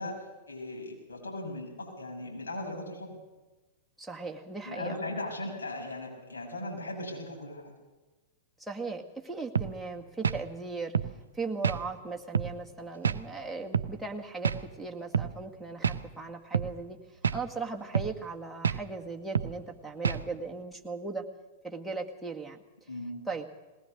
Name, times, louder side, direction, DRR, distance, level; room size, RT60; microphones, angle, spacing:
voice 1, 0.0-3.2 4.6-7.7 22.9-23.2, left 1 dB, 80° left, -1 dB, 6.7 m, -38 dB
voice 2, 4.0-5.3 8.6-10.9 11.3-17.0 17.3-21.3 21.6-22.6 23.3-23.5, right 3 dB, 5° right, -1 dB, 2.0 m, -38 dB
sound 1, 9.5-9.7 10.2-10.4 10.9-11.1 11.6-11.8 12.3-12.5 13.0-13.2 13.7-13.9 14.4-14.6 15.1-15.3 15.8-16.0 16.5-16.7 17.2-17.4 17.9-18.1 18.6-18.8 19.3-19.5 20.0-20.2, right 7 dB, 80° right, 0.7 m, -28 dB
20.5 x 18.5 x 6.7 m, 1.2 s
hypercardioid pair, 100°, 0 cm